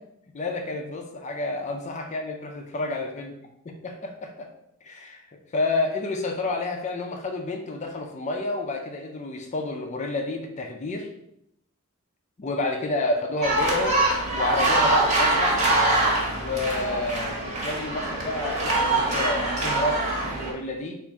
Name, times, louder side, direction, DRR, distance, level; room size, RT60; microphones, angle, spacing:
voice 1, 0.3-3.3 3.8-4.5 4.8-11.1 12.4-14.0 14.3-15.6 16.4-21.0, left 2 dB, 35° left, 3 dB, 0.4 m, -30 dB
sound 1, 13.4-20.5, right 2 dB, 35° right, 1.0 m, -24 dB
3.5 x 2.5 x 3.9 m, 0.77 s
head